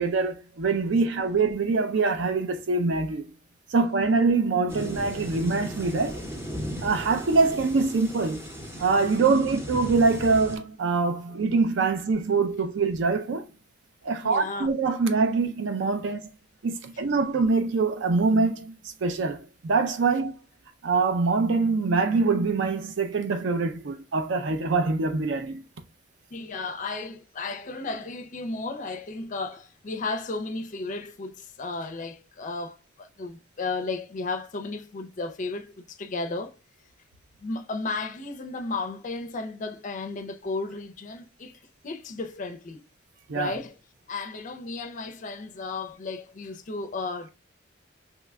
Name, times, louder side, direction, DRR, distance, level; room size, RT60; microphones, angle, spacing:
voice 1, 0.0-3.3 3.7-6.2 6.8-8.5 8.8-13.5 14.0-16.3 16.6-18.7 19.0-20.3 20.8-25.6 43.3-43.6, right 4 dB, 65° right, 0.4 m, -24 dB
sound 1, 4.7-10.6, equal, 15° right, 0.8 m, -37 dB
voice 2, 14.2-14.7 26.3-36.6 37.4-42.8 43.3-43.8 44.1-47.3, left 3 dB, 40° left, 0.4 m, -34 dB
2.9 x 2.2 x 3.4 m
head